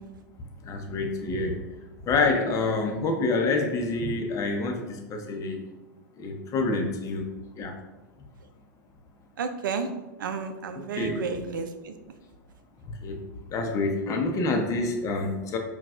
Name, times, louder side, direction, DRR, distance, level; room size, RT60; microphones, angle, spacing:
voice 1, 0.6-1.6 2.0-5.6 6.2-7.3 7.5-7.8 11.0-11.2 13.0-13.2 13.5-15.6, left 3 dB, 30° left, 3 dB, 0.6 m, -27 dB
voice 2, 9.4-9.9 10.2-11.9, right 5 dB, 80° right, 8 dB, 0.4 m, -31 dB
5.7 x 2.3 x 2.4 m, 1.1 s
hypercardioid pair, 115°, 11 cm